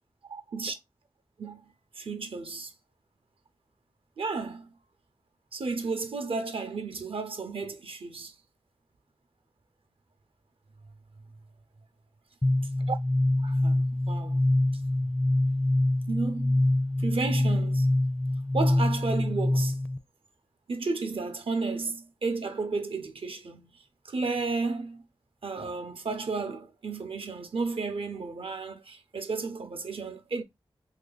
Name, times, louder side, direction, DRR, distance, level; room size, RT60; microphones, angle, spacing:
voice 1, 0.2-0.7 1.4-2.7 4.2-4.7 5.5-8.3 12.9-13.0 13.4-14.4 16.1-16.6 17.0-17.9 18.5-19.8 20.7-23.7 24.0-25.0 25.4-30.4, right 4 dB, 70° right, 0.7 m, -33 dB
sound 1, 12.4-20.0, left 1 dB, 15° left, 0.4 m, -25 dB
2.9 x 2.7 x 3.9 m
cardioid pair, 55°, 10 cm